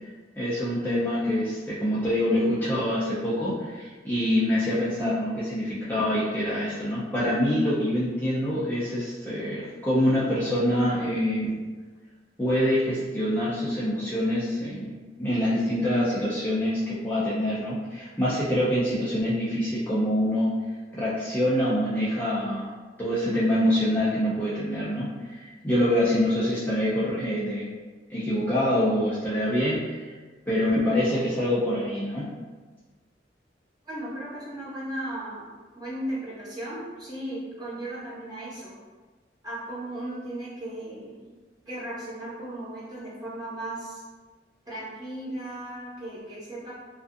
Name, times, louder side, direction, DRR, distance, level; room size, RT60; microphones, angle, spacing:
voice 1, 0.4-11.6 12.4-20.5 20.9-22.7 23.0-27.7 28.1-30.1 30.5-32.3, left 1 dB, 10° left, -10 dB, 0.4 m, -25 dB
voice 2, 33.8-35.5 35.7-38.7 39.4-41.2 41.7-44.0 44.7-46.7, right 1 dB, 25° right, -10 dB, 1.0 m, -36 dB
2.5 x 2.4 x 2.4 m, 1.4 s
head